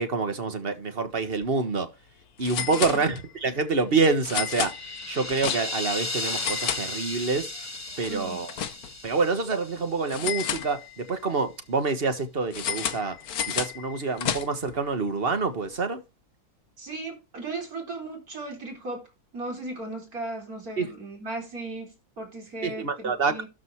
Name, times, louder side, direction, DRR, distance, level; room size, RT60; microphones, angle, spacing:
voice 1, 0.0-1.9 2.4-4.8 5.1-7.5 8.0-8.5 9.0-13.2 13.5-16.0 20.8-20.9 22.6-23.4, right 4 dB, 40° right, 1.6 m, -27 dB
sound 1, 1.3-1.4 1.7-1.8 2.4-3.5 4.2-5.9 6.2-7.4 7.7-9.1 10.1-11.2 12.5-14.8, left 8 dB, 75° left, 1.4 m, -32 dB
voice 2, 2.7-3.0 8.1-8.4 16.8-19.0 19.3-23.5, right 2 dB, 65° right, 4.6 m, -36 dB
sound 2, 4.2-10.4, left 2 dB, 15° left, 0.7 m, -35 dB
13.0 x 5.3 x 4.6 m
omnidirectional pair, 1.6 m